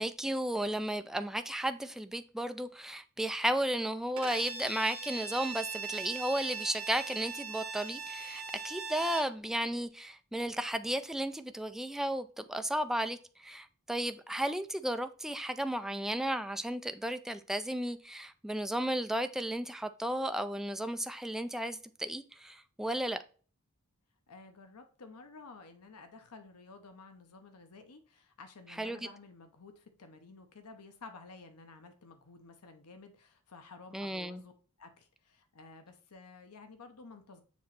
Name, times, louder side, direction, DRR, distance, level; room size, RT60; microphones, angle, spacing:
voice 1, 0.0-23.2 28.8-29.0 33.9-34.4, right 1 dB, ahead, 0.3 m, -34 dB
Bowed string instrument, 4.2-9.4, right 4 dB, 70° right, 1.2 m, -40 dB
voice 2, 24.3-34.5 34.8-37.4, left 3 dB, 85° left, 0.9 m, -52 dB
7.2 x 3.1 x 5.8 m
head